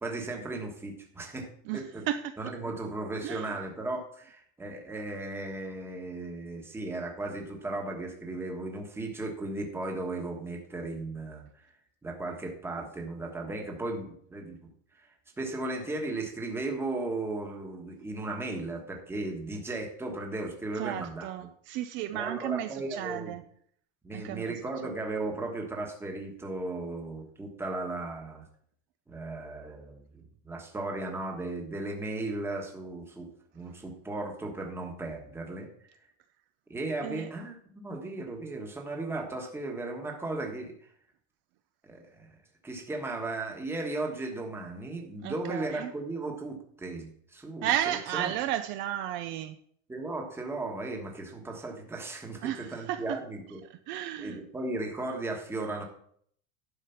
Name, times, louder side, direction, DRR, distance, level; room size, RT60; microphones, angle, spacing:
voice 1, 0.0-1.5 1.7-2.0 2.4-11.5 12.0-14.6 15.0-15.1 15.4-21.3 22.1-23.4 24.0-28.5 29.1-33.3 33.5-35.7 36.7-40.7 41.8-42.3 42.6-47.7 48.1-48.3 49.9-53.6 54.2-55.8, right 2 dB, 5° right, 1 dB, 1.2 m, -36 dB
voice 2, 1.7-2.5 3.2-3.6 20.8-23.4 24.1-24.6 24.8-24.9 37.0-37.3 45.2-45.9 47.6-49.6 52.4-53.2 53.7-54.4, right 12 dB, 35° right, 10 dB, 0.4 m, -33 dB
11.5 x 4.9 x 5.7 m, 0.63 s
supercardioid pair, 165°, 37 cm